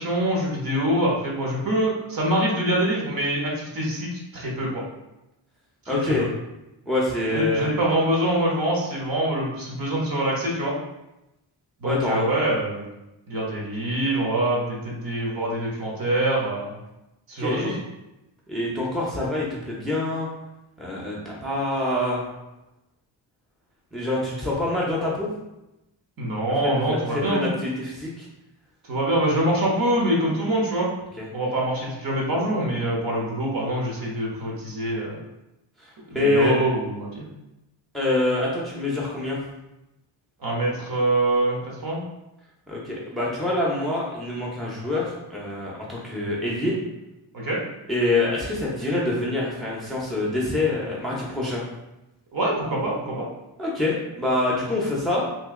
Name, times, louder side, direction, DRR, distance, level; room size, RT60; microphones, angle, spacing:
voice 1, 0.0-4.8 6.2-6.3 7.3-10.7 11.8-12.9 13.3-16.7 17.3-17.8 26.2-27.5 28.9-30.9 31.3-35.2 36.1-37.3 40.4-42.0 47.3-47.6 52.3-53.3, right 1 dB, 50° right, -3 dB, 1.1 m, -24 dB
voice 2, 5.9-6.3 6.9-7.7 11.8-12.3 17.4-17.8 18.5-20.3 20.8-22.3 23.9-25.3 26.6-28.3 31.2-31.3 36.1-36.6 37.9-39.4 42.7-46.7 47.9-51.6 53.6-55.3, left 2 dB, ahead, -5 dB, 0.7 m, -25 dB
3.1 x 2.7 x 3.6 m, 0.93 s
cardioid pair, 120°, 45 cm